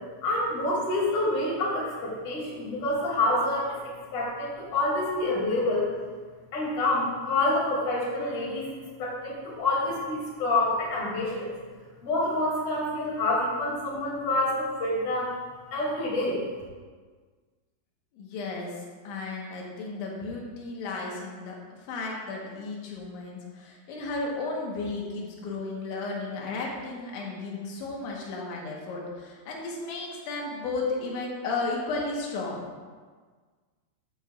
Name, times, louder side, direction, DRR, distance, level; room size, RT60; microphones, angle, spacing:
voice 1, 0.2-3.8 4.1-5.9 6.5-8.7 9.0-11.5 12.0-15.3 15.7-16.4, left 2 dB, 35° left, -5 dB, 3.1 m, -27 dB
voice 2, 18.2-21.6 21.9-32.7, left 3 dB, 85° left, -2 dB, 3.8 m, -34 dB
13.5 x 8.8 x 2.5 m, 1.5 s
omnidirectional pair, 5.2 m